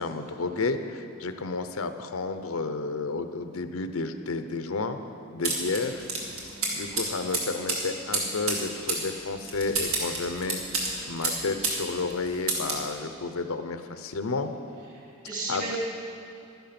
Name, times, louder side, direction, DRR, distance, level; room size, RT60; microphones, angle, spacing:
voice 1, 0.0-5.0 5.3-6.0 6.7-10.6 11.1-14.5 15.5-15.8, left 3 dB, 85° left, 9 dB, 0.7 m, -31 dB
sound 1, 5.4-11.8 12.1-12.9, right 3 dB, 80° right, 2.3 m, -30 dB
voice 2, 6.5-7.0 7.7-7.9 14.9-15.8, right 3 dB, 35° right, -4 dB, 2.8 m, -37 dB
12.5 x 10.5 x 5.9 m, 2.7 s
head